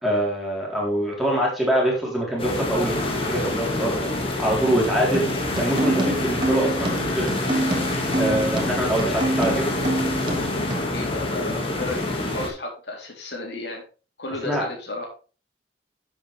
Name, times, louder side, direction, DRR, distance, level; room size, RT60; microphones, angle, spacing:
voice 1, 0.0-4.1 4.4-5.3 5.5-7.6 8.1-9.7 14.4-14.7, right 1 dB, ahead, -4 dB, 3.9 m, -24 dB
sound 1, 2.4-12.5, left 2 dB, 30° left, 2.1 m, -27 dB
sound 2, 5.1-10.9, right 1 dB, 25° right, 2.1 m, -27 dB
voice 2, 10.9-13.8 14.2-15.1, left 2 dB, 65° left, -1 dB, 3.6 m, -33 dB
10.5 x 7.5 x 3.5 m, 0.36 s
head